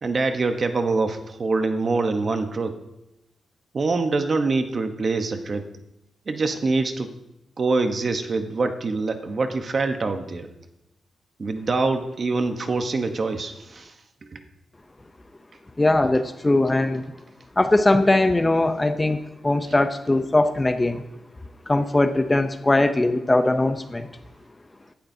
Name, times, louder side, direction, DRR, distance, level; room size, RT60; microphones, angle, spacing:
voice 1, 0.0-2.8 3.7-5.7 6.3-7.1 7.6-10.5 11.4-14.0 14.2-14.4 19.7-19.8, right 3 dB, 35° right, 7 dB, 1.0 m, -25 dB
voice 2, 15.8-17.0 17.6-21.0 21.7-24.1, left 2 dB, 15° left, 9 dB, 0.6 m, -20 dB
16.5 x 11.5 x 2.8 m, 0.90 s
wide cardioid pair, 135°, 0 cm